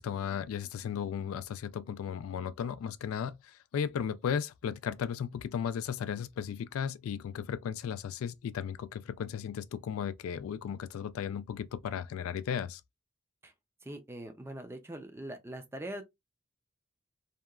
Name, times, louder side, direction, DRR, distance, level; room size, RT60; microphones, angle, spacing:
voice 1, 0.0-12.8, left 8 dB, 85° left, 0.3 m, -35 dB
voice 2, 13.8-16.0, right 1 dB, 10° right, 0.4 m, -42 dB
2.8 x 2.2 x 2.3 m
head